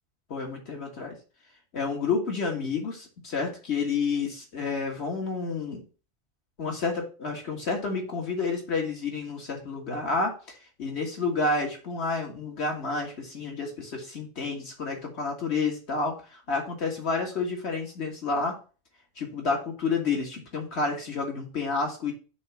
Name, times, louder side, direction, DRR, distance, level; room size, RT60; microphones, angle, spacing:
voice 1, 0.3-1.2 1.7-5.8 6.6-18.6 19.2-22.1, left 4 dB, 60° left, 1 dB, 2.0 m, -30 dB
7.1 x 3.2 x 5.9 m, 0.36 s
omnidirectional pair, 1.3 m